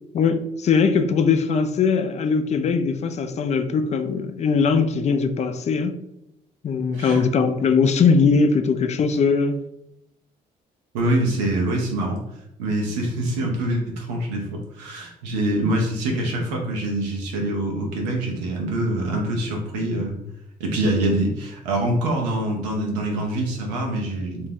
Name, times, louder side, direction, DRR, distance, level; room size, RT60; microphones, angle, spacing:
voice 1, 0.1-5.9 6.6-9.6, left 5 dB, 35° left, 0.4 m, -20 dB
voice 2, 10.9-12.2 12.6-20.2 20.6-24.5, right 1 dB, 90° right, 0.6 m, -25 dB
2.6 x 2.1 x 3.3 m
hypercardioid pair, 50°, 20 cm